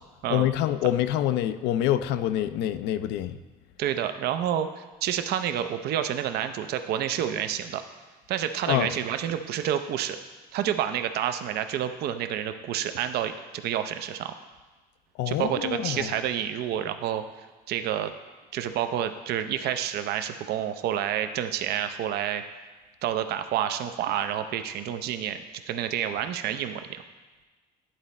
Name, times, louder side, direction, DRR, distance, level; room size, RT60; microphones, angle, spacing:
voice 1, 0.3-3.4 8.7-8.9 15.2-16.1, left 12 dB, 85° left, 12 dB, 0.4 m, -26 dB
voice 2, 3.8-7.8 8.3-10.2 10.5-14.3 15.3-17.2 17.7-18.1 18.5-22.4 23.0-25.4 25.7-27.0, right 10 dB, 70° right, 9 dB, 0.5 m, -29 dB
10.0 x 4.0 x 4.2 m, 1.2 s
cardioid pair, 110°, 17 cm